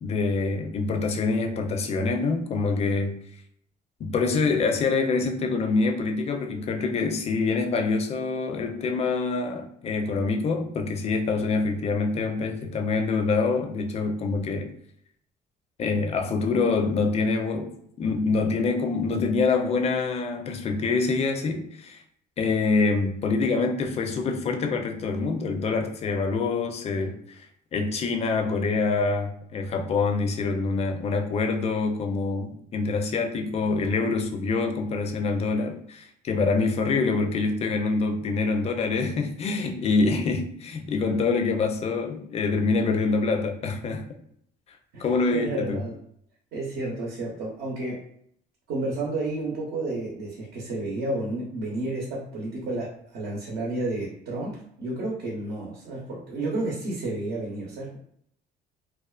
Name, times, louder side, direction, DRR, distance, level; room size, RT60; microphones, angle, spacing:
voice 1, 0.0-3.2 4.0-14.7 15.8-22.0 22.4-27.5 27.7-44.1 45.0-45.8, left 4 dB, 40° left, 0.4 m, -25 dB
voice 2, 45.3-45.9 46.5-48.0 48.7-58.0, right 2 dB, 70° right, 0.8 m, -31 dB
2.4 x 2.3 x 2.3 m
cardioid pair, 110°, 17 cm